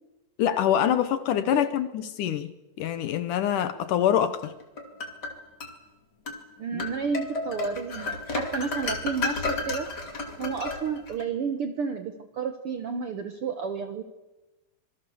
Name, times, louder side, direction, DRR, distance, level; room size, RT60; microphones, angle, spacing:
voice 1, 0.4-2.5 2.8-4.5 6.7-6.9, left 10 dB, 70° left, 2.3 m, -25 dB
sound 1, 4.4-5.7 6.3-6.4 6.8-11.2, left 3 dB, 30° left, 2.7 m, -32 dB
voice 2, 6.6-9.9 10.4-14.0, right 5 dB, 80° right, 1.2 m, -31 dB
26.0 x 21.5 x 7.0 m
omnidirectional pair, 4.2 m